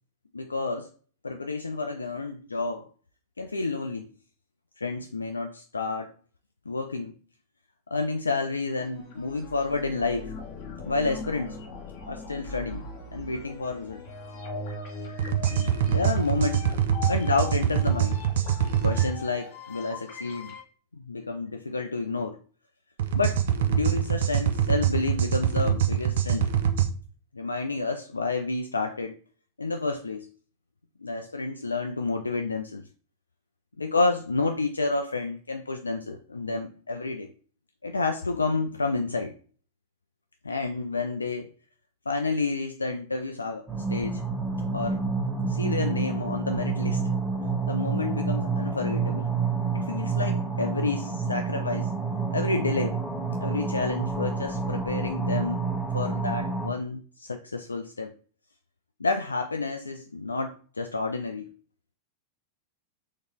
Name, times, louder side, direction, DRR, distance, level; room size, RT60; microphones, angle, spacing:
voice 1, 0.3-0.9 1.2-2.9 3.4-4.1 4.8-6.1 6.7-7.1 7.9-10.3 10.8-11.6 12.1-12.8 13.1-14.0 15.5-16.8 17.1-18.2 18.8-20.5 20.9-22.4 23.1-26.5 27.3-29.2 29.6-30.3 31.0-32.8 33.8-37.3 37.8-39.3 40.4-41.5 42.1-44.2 44.7-45.0 45.5-47.0 47.7-49.3 49.7-51.9 52.3-53.0 53.4-55.7 55.9-58.1 59.0-61.5, left 3 dB, 80° left, 5 dB, 0.3 m, -30 dB
sound 1, 8.8-20.6, left 3 dB, 45° left, 1.5 m, -40 dB
sound 2, 15.2-19.1 23.0-26.9, right 9 dB, 60° right, 0.5 m, -24 dB
sound 3, 43.7-56.7, right 4 dB, 15° right, 1.4 m, -29 dB
3.8 x 3.0 x 3.4 m, 0.41 s
figure-of-eight pair, 90°, 0 cm